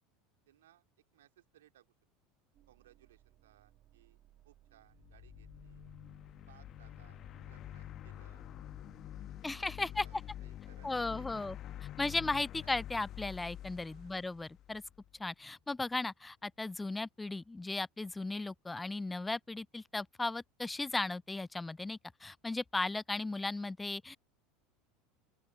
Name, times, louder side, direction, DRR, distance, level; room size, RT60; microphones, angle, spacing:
voice 1, 0.5-0.8 1.1-1.9 2.7-4.2 4.4-5.9 6.5-8.4 9.4-11.5 13.8-14.2, right 13 dB, 75° right, 3.0 m, -65 dB
sound 1, 2.5-9.4, right 13 dB, 50° right, 2.0 m, -63 dB
sound 2, 4.9-15.1, left 12 dB, 45° left, 1.2 m, -48 dB
voice 2, 9.4-10.0 10.8-11.6 12.0-14.8 15.2-24.2, left 3 dB, 10° left, 0.4 m, -36 dB
open air
hypercardioid pair, 80°, 0 cm